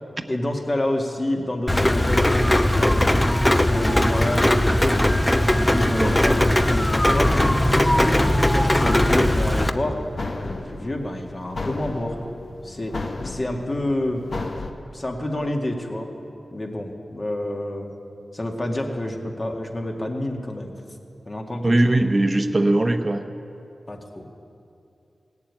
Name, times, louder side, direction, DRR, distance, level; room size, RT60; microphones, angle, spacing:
voice 1, 0.3-3.0 3.5-5.0 5.5-7.3 7.9-10.0 10.4-12.2 12.6-14.2 14.9-16.1 16.5-17.9 18.3-20.7 21.3-22.1 23.9-24.3, left 1 dB, 40° left, 1 dB, 1.9 m, -28 dB
Rain, 1.7-9.7, left 1 dB, 15° left, 0.7 m, -19 dB
sound 1, 5.9-14.7, left 2 dB, 60° left, 1.0 m, -34 dB
voice 2, 21.6-23.2, right 1 dB, 40° right, 7 dB, 1.0 m, -20 dB
17.0 x 7.3 x 8.9 m, 2.6 s
cardioid pair, 45°, 0 cm